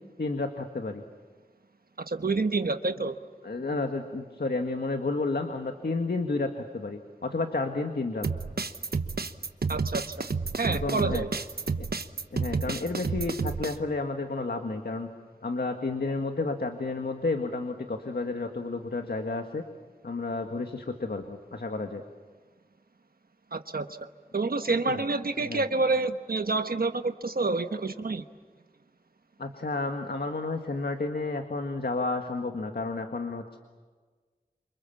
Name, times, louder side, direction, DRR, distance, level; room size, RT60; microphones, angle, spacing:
voice 1, 0.2-1.0 3.4-8.3 10.7-11.3 12.3-15.1 15.4-19.6 20.0-22.0 24.9-25.0 25.4-25.6 29.4-33.6, left 3 dB, 85° left, 5 dB, 1.8 m, -31 dB
voice 2, 2.1-3.1 9.7-10.1 10.6-11.3 23.5-23.9 24.3-28.2, right 3 dB, 70° right, 8 dB, 1.2 m, -28 dB
sound 1, 8.2-13.7, right 4 dB, 90° right, 1.1 m, -30 dB
29.5 x 27.0 x 7.3 m, 1.4 s
wide cardioid pair, 65°, 16 cm